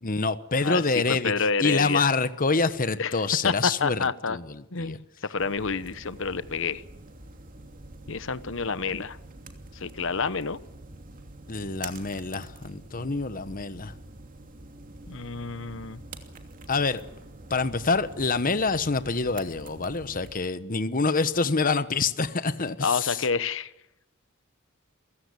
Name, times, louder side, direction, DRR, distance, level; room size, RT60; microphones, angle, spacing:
voice 1, 0.0-4.0 4.3-5.0 11.5-13.9 16.7-17.0 17.5-23.2, left 4 dB, 40° left, 1.2 m, -26 dB
voice 2, 1.1-2.0 3.0-4.4 4.7-6.8 8.1-9.2 9.7-10.6 15.1-16.0 22.8-23.7, left 5 dB, 65° left, 1.1 m, -28 dB
sound 1, 5.4-20.3, right 2 dB, 40° right, 2.8 m, -46 dB
28.5 x 16.0 x 8.4 m
head